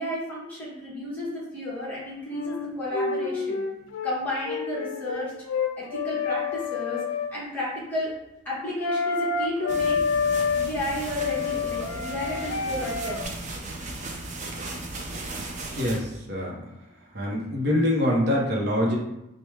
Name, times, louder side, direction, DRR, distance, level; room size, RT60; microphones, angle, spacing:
voice 1, 0.0-3.6 4.0-5.3 5.8-7.0 7.3-8.1 8.4-10.0 10.5-13.2, left 1 dB, 10° left, -7 dB, 1.2 m, -32 dB
sound 1, 2.2-4.2 4.4-7.3 8.8-10.7 11.1-13.2, left 5 dB, 85° left, 0.4 m, -28 dB
sound 2, 9.7-16.0, right 2 dB, 35° right, 0.4 m, -36 dB
voice 2, 15.8-16.6 17.1-19.0, left 1 dB, 50° right, -1 dB, 0.8 m, -24 dB
4.6 x 2.2 x 3.2 m, 0.88 s
head